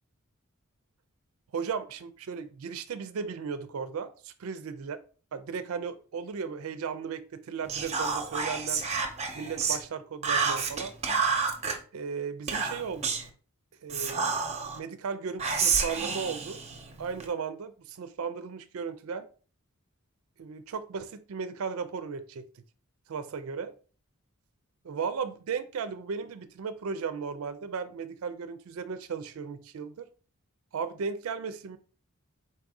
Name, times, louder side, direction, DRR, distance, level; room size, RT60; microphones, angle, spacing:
voice 1, 1.5-5.0 5.3-8.8 9.3-10.9 11.9-13.1 13.8-16.6 17.0-19.3 20.4-22.5 23.1-23.7 24.8-30.1 30.7-31.8, right 6 dB, 75° right, 12 dB, 0.4 m, -36 dB
Whispering, 7.7-9.8 10.2-11.8 12.5-13.3 13.9-14.8 15.4-17.3, right 5 dB, 30° right, 0.6 m, -29 dB
4.1 x 2.6 x 4.7 m, 0.40 s
head